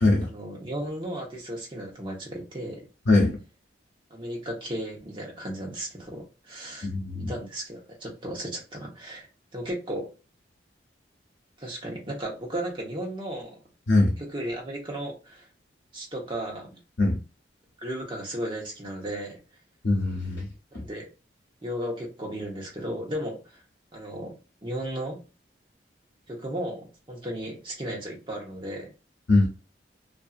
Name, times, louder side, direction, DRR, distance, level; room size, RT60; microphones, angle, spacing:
voice 1, 0.2-2.8 4.1-6.9 7.3-9.3 9.5-10.1 11.6-13.6 14.2-15.5 15.9-16.8 17.8-19.4 20.7-21.1 21.6-23.6 23.9-25.2 26.3-28.9, right 1 dB, 25° right, 1.0 m, -35 dB
voice 2, 6.8-7.3 13.9-14.1 17.0-17.2 19.8-20.5 29.3-29.5, left 2 dB, 65° left, 0.7 m, -21 dB
2.6 x 2.4 x 2.4 m
head